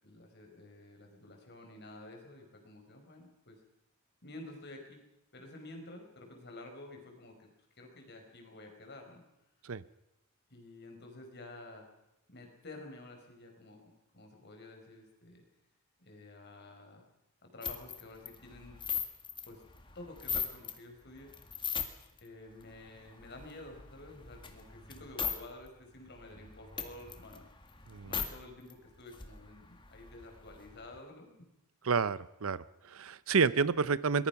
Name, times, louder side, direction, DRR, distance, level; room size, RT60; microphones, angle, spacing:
voice 1, 0.0-3.6 4.2-5.0 5.3-9.2 10.5-11.9 12.3-15.4 16.0-17.1 17.4-18.9 19.4-19.6 20.0-21.3 22.2-27.5 27.8-31.3, left 2 dB, 50° left, 3 dB, 5.2 m, -51 dB
sound 1, 17.6-20.8 21.2-22.2 22.6-25.4 25.7-25.8 26.1-28.3 28.7-28.8 29.0-31.0, left 7 dB, 20° left, 1.8 m, -39 dB
voice 2, 27.9-28.2 31.8-34.3, right 5 dB, 70° right, 17 dB, 0.7 m, -30 dB
23.0 x 21.0 x 5.9 m, 0.88 s
head